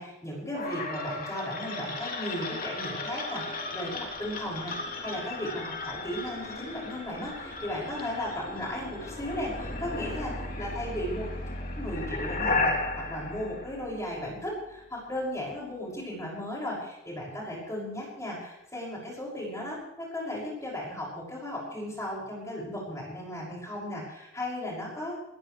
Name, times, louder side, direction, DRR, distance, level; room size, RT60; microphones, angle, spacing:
voice 1, 0.0-11.4 11.8-25.2, left 1 dB, 15° left, -4 dB, 6.4 m, -36 dB
sound 1, 0.5-14.4, left 2 dB, 50° left, 3.2 m, -35 dB
20.5 x 19.0 x 3.3 m, 0.90 s
head